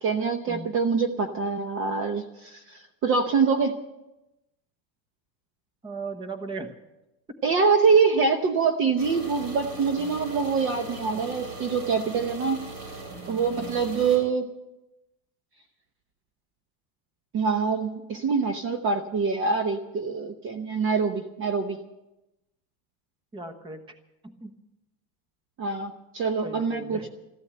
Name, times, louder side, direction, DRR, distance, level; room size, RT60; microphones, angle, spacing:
voice 1, 0.0-3.8 7.4-12.6 13.3-14.5 17.3-21.8 25.6-27.1, right 5 dB, 30° right, 7 dB, 0.9 m, -25 dB
voice 2, 5.8-6.7 23.3-24.0 24.2-24.5 26.4-27.0, right 3 dB, 10° right, 8 dB, 1.1 m, -36 dB
sound 1, 9.0-14.2, right 3 dB, 65° right, 7.6 m, -39 dB
14.5 x 12.0 x 7.6 m, 0.95 s
supercardioid pair, 160°, 40 cm